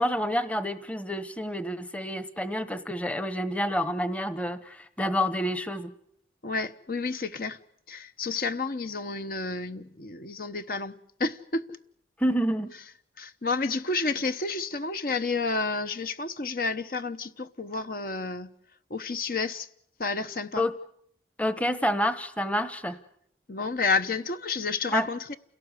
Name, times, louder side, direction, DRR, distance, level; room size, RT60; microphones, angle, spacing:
voice 1, 0.0-5.9 12.2-12.7 20.6-20.7 21.4-23.0 24.9-25.1, equal, 5° left, 1.0 m, -28 dB
voice 2, 6.4-7.6 7.9-10.9 11.2-11.8 13.2-18.5 18.9-19.7 20.0-20.6 23.5-25.4, left 3 dB, 50° left, 0.9 m, -30 dB
29.0 x 17.5 x 8.2 m
head